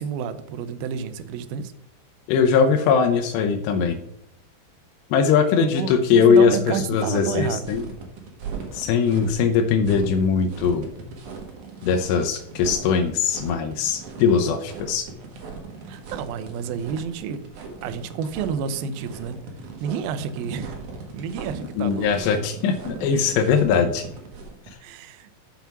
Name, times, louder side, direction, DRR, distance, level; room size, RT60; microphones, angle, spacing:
voice 1, 0.0-1.7 5.6-7.7 15.9-17.4 17.8-19.4 19.8-20.8 21.1-22.1 24.8-25.3, right 7 dB, 80° right, 11 dB, 2.1 m, -30 dB
voice 2, 2.3-4.0 5.1-7.8 8.7-10.9 11.8-15.1 21.8-24.0, left 6 dB, 80° left, 4 dB, 2.8 m, -20 dB
sound 1, 7.6-24.7, right 5 dB, 60° right, 2.3 m, -39 dB
7.2 x 5.8 x 5.8 m, 0.77 s
omnidirectional pair, 5.1 m